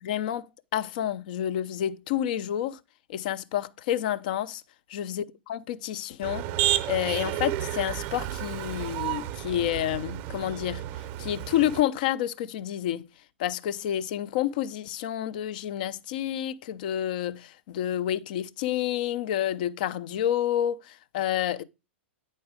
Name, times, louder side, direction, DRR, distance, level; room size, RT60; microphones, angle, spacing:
voice 1, 0.0-0.5 0.7-2.8 3.1-4.6 4.9-6.5 6.9-10.8 11.2-13.1 13.4-21.6, left 11 dB, 45° left, 0.6 m, -29 dB
Motor vehicle (road), 6.2-11.8, right 12 dB, 35° right, 0.7 m, -31 dB
9.4 x 4.3 x 4.8 m
figure-of-eight pair, 100°, 6 cm